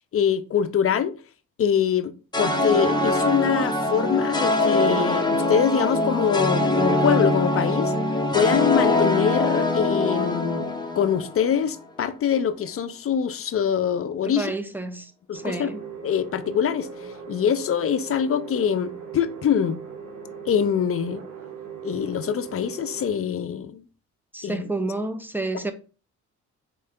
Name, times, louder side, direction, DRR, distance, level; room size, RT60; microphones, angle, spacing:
voice 1, 0.1-1.1 1.6-7.9 8.3-14.5 15.3-15.7 16.0-16.9 17.3-19.8 20.5-21.2 21.8-23.8 24.4-24.7, left 8 dB, 50° left, 0.6 m, -24 dB
sound 1, 2.3-11.6, left 2 dB, 15° left, 1.1 m, -23 dB
voice 2, 14.3-15.8 24.3-25.7, right 2 dB, 5° right, 0.7 m, -30 dB
sound 2, 15.3-23.1, right 6 dB, 65° right, 1.5 m, -39 dB
4.5 x 3.2 x 3.6 m
cardioid pair, 90°, 30 cm